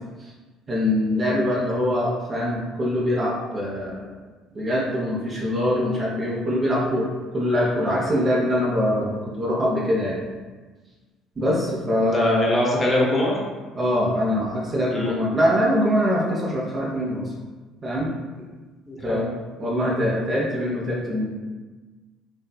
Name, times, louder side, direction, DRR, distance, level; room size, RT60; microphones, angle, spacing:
voice 1, 0.7-4.1 4.5-7.1 7.3-10.2 11.4-12.5 13.8-17.3 17.8-18.1 19.0-19.3 19.6-21.3, equal, 30° right, -4 dB, 0.5 m, -23 dB
voice 2, 12.1-13.4 14.9-15.1 18.9-19.2, left 1 dB, 20° left, -3 dB, 0.7 m, -22 dB
2.5 x 2.3 x 2.3 m, 1.3 s
figure-of-eight pair, 55°, 0 cm